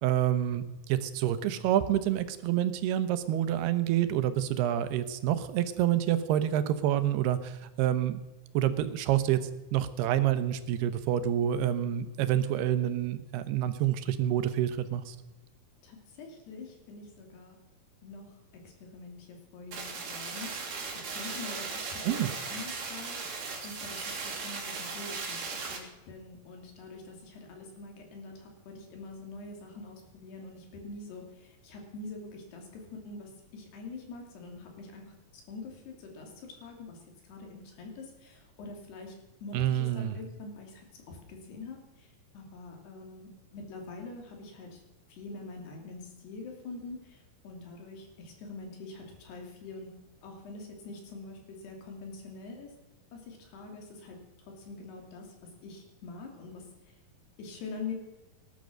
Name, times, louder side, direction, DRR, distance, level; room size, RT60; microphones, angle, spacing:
voice 1, 0.0-8.2 8.5-9.4 9.7-15.2 22.0-22.3 39.5-40.2, right 11 dB, 80° right, 11 dB, 2.9 m, -28 dB
voice 2, 15.8-17.6 18.0-18.3 18.6-23.2 23.6-35.0 35.3-37.0 37.2-39.1 39.4-42.1 42.3-44.8 45.1-49.9 50.2-52.7 53.1-54.2 54.6-55.3 55.6-57.0 57.4-57.9, left 3 dB, 80° left, 2 dB, 5.0 m, -45 dB
sound 1, 19.7-25.8, right 4 dB, 45° right, 4.0 m, -37 dB
19.0 x 10.5 x 6.4 m, 1.0 s
omnidirectional pair, 4.6 m